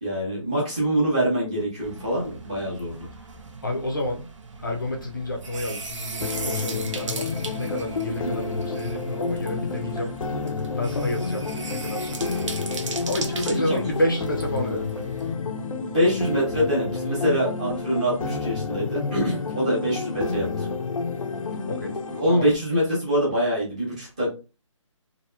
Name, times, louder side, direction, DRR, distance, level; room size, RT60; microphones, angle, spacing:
voice 1, 0.0-3.1 8.1-8.3 13.7-13.8 15.8-20.7 22.1-24.3, equal, 15° right, 0.8 m, -25 dB
sound 1, 1.8-15.3, right 3 dB, 65° right, 0.6 m, -38 dB
voice 2, 3.6-4.3 4.6-10.1 10.7-12.4 13.1-14.9 21.7-22.0 22.3-22.5, left 1 dB, 40° left, 0.5 m, -29 dB
sound 2, 6.2-22.2, left 4 dB, 85° left, 0.6 m, -30 dB
2.8 x 2.6 x 2.2 m
hypercardioid pair, 180°, 17 cm